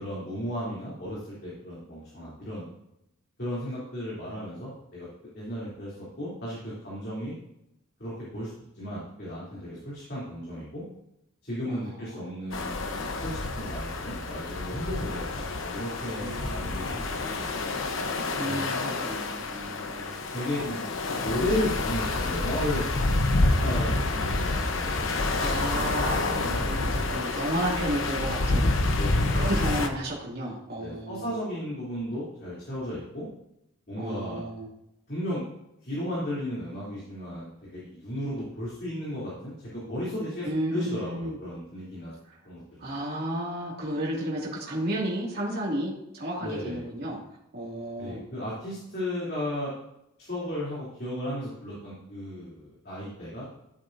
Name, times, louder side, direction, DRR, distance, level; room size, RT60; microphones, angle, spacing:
voice 1, 0.0-2.7 3.4-5.1 5.3-7.3 8.0-8.5 8.7-10.8 11.4-12.7 13.2-17.3 18.4-18.6 20.3-20.9 21.2-25.7 28.9-29.5 30.8-33.3 33.9-34.4 35.1-35.4 35.8-42.1 42.4-42.9 46.4-46.8 48.0-49.7 50.2-53.4, left 1 dB, 50° left, -8 dB, 3.1 m, -34 dB
voice 2, 11.7-12.0 16.2-17.0 18.4-20.2 25.4-28.7 29.3-31.3 34.0-34.7 40.4-41.4 42.3-42.4 42.8-47.2 47.5-48.2, right 1 dB, 50° right, -4 dB, 2.3 m, -32 dB
sound 1, 12.5-29.9, left 2 dB, 70° left, 0.9 m, -28 dB
13.5 x 8.3 x 2.7 m, 0.83 s
head